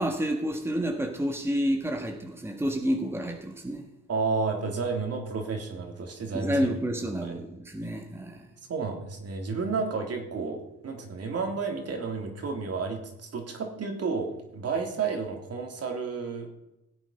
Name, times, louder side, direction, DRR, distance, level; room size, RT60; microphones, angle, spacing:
voice 1, 0.0-3.8 6.3-8.5, equal, 10° right, 3 dB, 1.6 m, -29 dB
voice 2, 4.1-6.7 7.1-7.4 8.7-16.5, right 4 dB, 55° right, 3 dB, 3.1 m, -31 dB
17.0 x 8.1 x 5.6 m, 0.87 s
cardioid pair, 90°, 30 cm